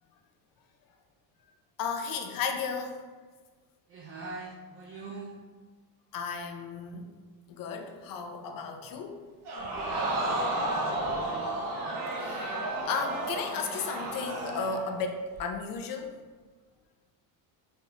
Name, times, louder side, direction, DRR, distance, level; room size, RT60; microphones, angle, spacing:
voice 1, 1.8-3.0 6.1-7.1 7.5-9.2 12.2-12.6 12.8-16.1, left 5 dB, 50° left, 5 dB, 0.6 m, -34 dB
voice 2, 3.9-5.3 9.6-11.6, right 3 dB, 30° right, 0 dB, 0.4 m, -43 dB
Crowd, 9.4-14.9 15.3-15.4, right 1 dB, 60° right, 1.1 m, -32 dB
4.2 x 3.5 x 2.8 m, 1.4 s
cardioid pair, 115°, 46 cm